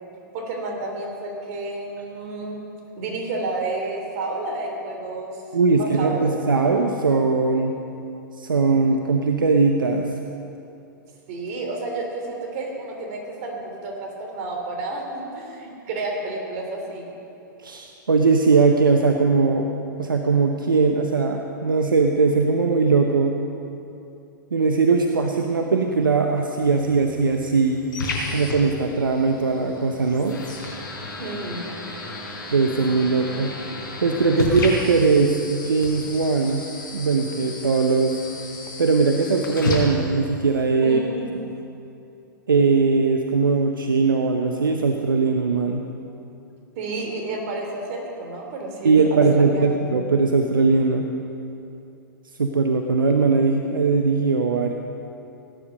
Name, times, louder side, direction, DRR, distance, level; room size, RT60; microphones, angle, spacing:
voice 1, 0.3-2.6 3.0-5.4 5.7-6.3 11.3-17.1 31.2-31.7 40.8-41.5 46.8-49.8, right 2 dB, 45° right, 1 dB, 3.1 m, -31 dB
voice 2, 5.5-7.8 8.4-10.1 17.6-23.4 24.5-27.8 28.3-30.4 32.5-33.5 34.0-36.6 36.9-38.2 38.8-41.0 42.5-45.8 48.8-51.1 52.4-54.7, right 4 dB, 80° right, 4 dB, 0.9 m, -20 dB
sound 1, 26.6-40.6, left 3 dB, 70° left, 4.1 m, -33 dB
17.5 x 10.0 x 5.2 m, 2.7 s
figure-of-eight pair, 105°, 11 cm